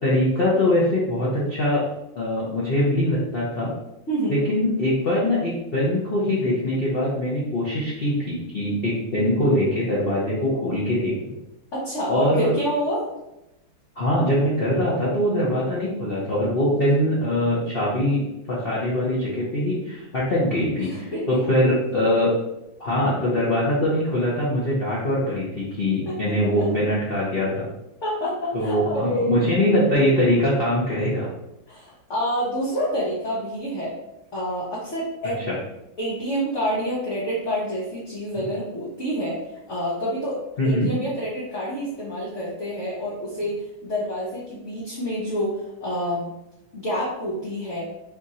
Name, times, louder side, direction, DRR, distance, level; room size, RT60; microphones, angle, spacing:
voice 1, 0.0-1.8 2.1-3.7 4.3-11.3 12.1-12.5 14.0-18.2 18.5-22.3 22.8-27.5 28.5-31.3 40.6-40.9, left 1 dB, 70° left, -6 dB, 0.5 m, -22 dB
voice 2, 4.1-4.4 11.7-13.0 20.8-21.4 26.1-26.2 26.6-26.7 28.0-29.4 31.7-33.9 34.3-35.4 36.0-39.4 39.7-40.4 40.6-43.5 43.8-46.3 46.7-47.9, equal, 50° left, -7 dB, 0.9 m, -27 dB
4.3 x 2.5 x 4.1 m, 0.91 s
omnidirectional pair, 2.4 m